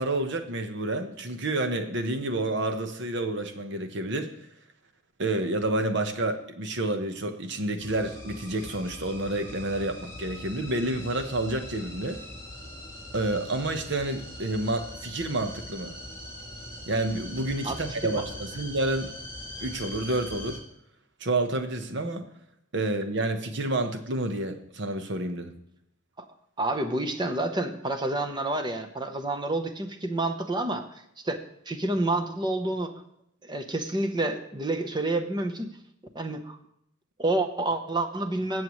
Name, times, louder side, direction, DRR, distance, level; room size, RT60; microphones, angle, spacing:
voice 1, 0.0-4.3 5.2-12.2 13.1-16.0 16.9-19.1 19.6-20.6 21.2-22.3 22.7-25.5, right 2 dB, 65° right, 7 dB, 1.1 m, -29 dB
sound 1, 7.8-20.6, left 1 dB, 15° left, 5.3 m, -42 dB
voice 2, 17.6-18.2 26.2-26.3 26.6-30.9 31.2-32.9 33.4-35.7 36.1-36.6 37.2-38.6, right 2 dB, 25° right, 6 dB, 0.9 m, -29 dB
20.0 x 7.7 x 3.2 m, 0.74 s
head